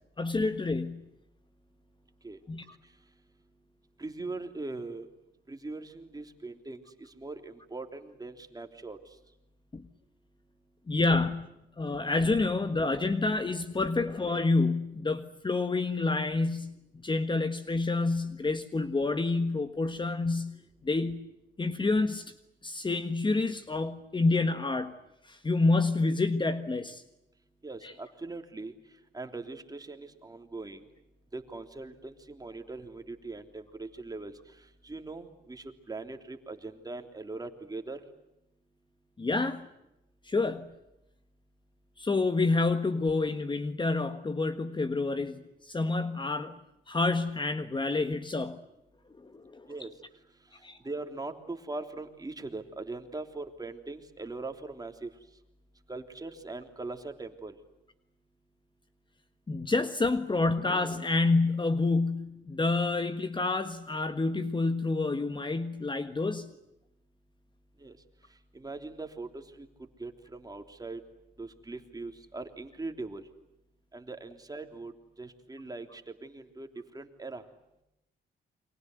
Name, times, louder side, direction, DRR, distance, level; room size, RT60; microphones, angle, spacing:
voice 1, 0.2-1.1 2.5-2.6 9.7-9.8 10.9-11.5 11.8-21.3 21.6-22.3 22.6-24.9 25.2-27.0 27.8-27.9 39.2-39.7 40.2-40.7 42.0-46.6 46.9-48.6 49.2-49.7 50.6-50.8 59.5-66.5, left 3 dB, 25° left, 10 dB, 1.5 m, -28 dB
voice 2, 4.0-5.1 5.5-9.0 27.6-28.7 29.1-30.9 31.3-34.3 34.8-38.0 49.7-49.9 50.8-55.1 55.9-57.5 67.8-67.9 68.5-69.7 70.0-71.0 71.4-73.2 73.9-74.9 75.2-76.7 76.9-77.4, right 3 dB, 20° right, 5 dB, 3.4 m, -41 dB
29.5 x 24.0 x 8.0 m, 0.89 s
cardioid pair, 90°, 20 cm